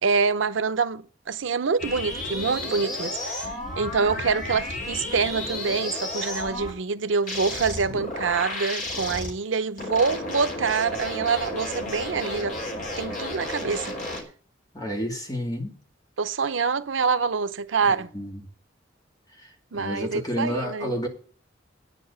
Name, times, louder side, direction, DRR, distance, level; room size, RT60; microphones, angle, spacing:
voice 1, 0.0-12.5 13.0-13.9 16.2-18.1 19.7-20.9, right 5 dB, 90° right, 0.7 m, -26 dB
sound 1, 1.8-6.7 7.3-9.3 9.8-14.2, left 1 dB, 45° left, 3.6 m, -32 dB
voice 2, 14.7-15.8 17.9-18.4 19.7-21.1, equal, 20° left, 2.4 m, -30 dB
9.5 x 6.9 x 8.5 m
head